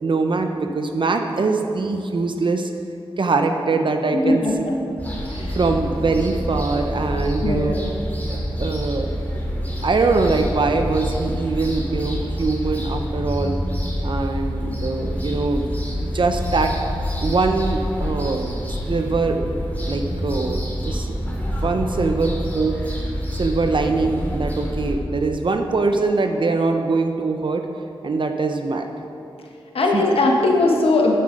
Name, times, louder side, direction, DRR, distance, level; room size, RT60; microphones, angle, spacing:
voice 1, 0.0-2.7 3.2-4.4 5.4-7.8 8.3-9.2 9.8-13.6 14.0-15.6 15.9-16.8 17.2-18.5 18.9-19.5 19.8-22.8 23.3-27.7 28.0-28.9 29.9-30.0, right 3 dB, 60° right, 5 dB, 0.7 m, -22 dB
voice 2, 4.1-5.0 5.3-5.6 7.4-7.8 29.7-31.2, left 2 dB, 80° left, 0 dB, 1.3 m, -20 dB
sound 1, 5.0-24.9, equal, 15° left, 2.5 m, -27 dB
9.4 x 7.6 x 5.1 m, 2.7 s
cardioid pair, 55°, 10 cm